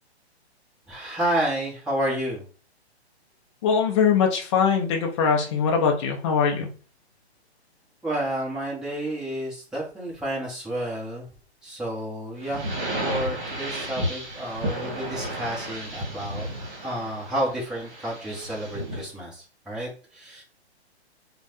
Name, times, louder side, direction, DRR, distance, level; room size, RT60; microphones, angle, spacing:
voice 1, 0.9-2.4 8.0-11.3 11.6-16.5 16.8-20.4, right 1 dB, ahead, -7 dB, 0.9 m, -30 dB
voice 2, 3.6-6.7, left 6 dB, 30° left, 1 dB, 0.5 m, -22 dB
sound 1, 12.4-19.1, right 1 dB, 25° right, 1.6 m, -33 dB
3.1 x 2.2 x 2.9 m, 0.37 s
hypercardioid pair, 135°, 33 cm